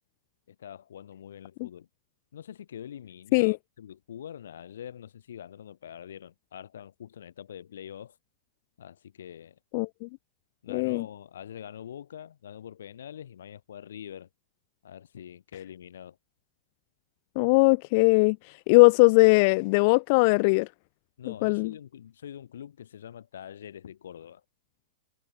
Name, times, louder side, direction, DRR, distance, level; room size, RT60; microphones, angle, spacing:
voice 1, 0.5-1.9 2.3-8.2 8.8-9.6 10.6-14.3 14.8-16.2 21.2-24.4, left 9 dB, 85° left, 8.0 m, -44 dB
voice 2, 9.7-10.1 10.7-11.0 17.4-18.4 18.7-20.7 21.3-21.7, left 30 dB, 40° left, 0.6 m, -20 dB
supercardioid pair, 155°, 0 cm